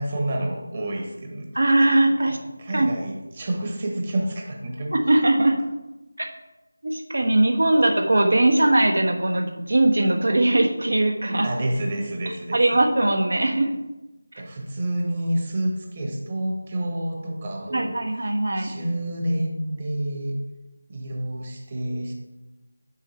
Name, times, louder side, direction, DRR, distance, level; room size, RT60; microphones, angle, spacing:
voice 1, 0.0-1.6 2.3-4.9 11.4-12.8 14.4-17.9 18.5-20.4 20.9-22.1, right 1 dB, 30° right, 1 dB, 1.3 m, -29 dB
voice 2, 1.5-2.4 2.7-2.9 4.9-5.6 6.2-6.3 6.8-11.5 12.5-13.7 17.7-18.7, right 1 dB, 70° right, 4 dB, 1.2 m, -20 dB
7.0 x 5.6 x 4.2 m, 1.0 s
figure-of-eight pair, 170°, 0 cm